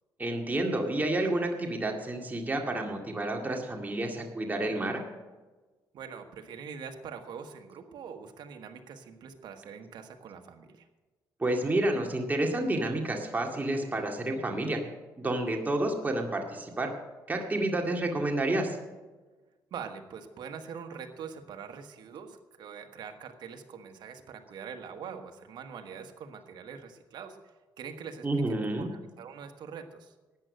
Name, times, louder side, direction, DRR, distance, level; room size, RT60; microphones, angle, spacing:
voice 1, 0.2-5.0 11.4-14.8 15.2-16.9 17.3-18.8 28.2-28.9, right 1 dB, 20° right, 2 dB, 2.1 m, -30 dB
voice 2, 5.9-10.9 19.7-30.1, right 6 dB, 70° right, 5 dB, 1.4 m, -44 dB
13.5 x 9.2 x 6.5 m, 1.2 s
cardioid pair, 85°, 8 cm